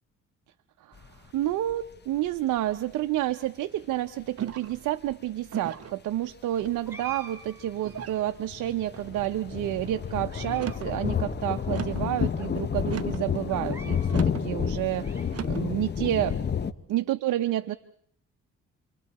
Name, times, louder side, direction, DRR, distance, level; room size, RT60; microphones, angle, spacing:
sound 1, 1.0-1.7 2.3-2.4 2.7-2.8 5.1-5.2 6.9-7.1 7.4-16.7, left 7 dB, 35° left, 1.1 m, -30 dB
voice 1, 1.3-16.4 16.9-17.7, right 13 dB, 80° right, 8 dB, 0.9 m, -29 dB
sound 2, 4.4-4.8 5.5-6.0 6.6-7.1 7.8-8.3 8.9-9.3 10.5-11.0 11.7-12.1 12.8-13.3 14.1-14.5 15.3-15.7, right 9 dB, 50° right, 1.0 m, -38 dB
sound 3, 6.8-8.3 8.9-9.6 10.1-10.8 11.1-11.2 11.9-12.0 12.4-12.5 13.5-14.3 14.7-15.7, right 5 dB, 10° right, 4.5 m, -47 dB
30.0 x 24.5 x 4.3 m, 0.63 s
cardioid pair, 90°, 30 cm